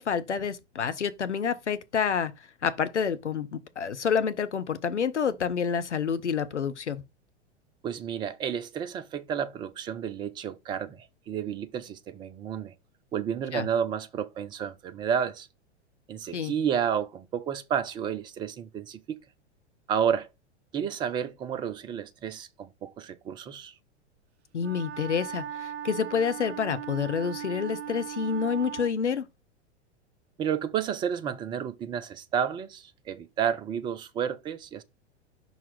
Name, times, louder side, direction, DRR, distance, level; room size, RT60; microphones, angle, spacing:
voice 1, 0.0-2.3 2.6-7.0 13.5-13.7 16.3-16.5 24.5-29.3, left 6 dB, 80° left, 0.7 m, -28 dB
voice 2, 7.8-12.7 13.1-15.5 16.1-19.2 19.9-20.3 20.7-23.7 30.4-34.8, right 8 dB, 15° right, 0.4 m, -31 dB
Wind instrument woodwind instrument, 24.6-29.0, right 9 dB, 70° right, 0.5 m, -38 dB
5.6 x 4.0 x 4.6 m
figure-of-eight pair, 95°, 34 cm